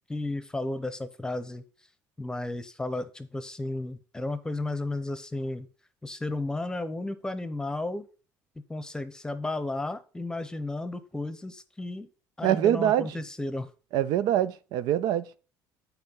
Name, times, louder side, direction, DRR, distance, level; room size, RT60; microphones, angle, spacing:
voice 1, 0.1-1.6 2.2-5.7 6.0-8.1 8.7-12.1 12.4-13.7, left 2 dB, 10° left, 0.8 m, -33 dB
voice 2, 12.4-13.2 13.9-15.3, right 11 dB, 75° right, 0.4 m, -24 dB
7.8 x 4.5 x 5.4 m
cardioid pair, 105°, 7 cm